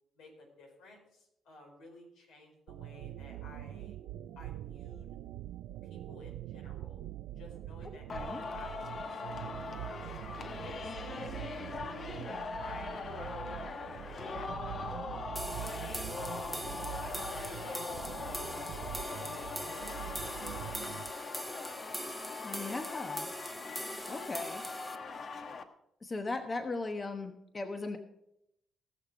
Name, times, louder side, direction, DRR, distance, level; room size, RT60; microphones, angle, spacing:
voice 1, 0.1-4.0 4.4-5.1 5.9-7.0 7.3-10.2 10.6-15.0 15.4-16.6 17.0-21.3, left 2 dB, 85° left, 1 dB, 4.5 m, -55 dB
sound 1, 2.7-21.1, right 13 dB, 85° right, 0.5 m, -44 dB
Singing, 8.1-25.6, left 4 dB, 50° left, 1.2 m, -41 dB
voice 2, 8.1-8.4 22.4-23.3 24.1-24.6 26.0-28.0, left 3 dB, 30° left, 6 dB, 1.1 m, -38 dB
sound 2, 15.4-25.0, right 1 dB, 5° right, 1.1 m, -43 dB
18.0 x 6.7 x 5.0 m, 0.81 s
cardioid pair, 90°, 0 cm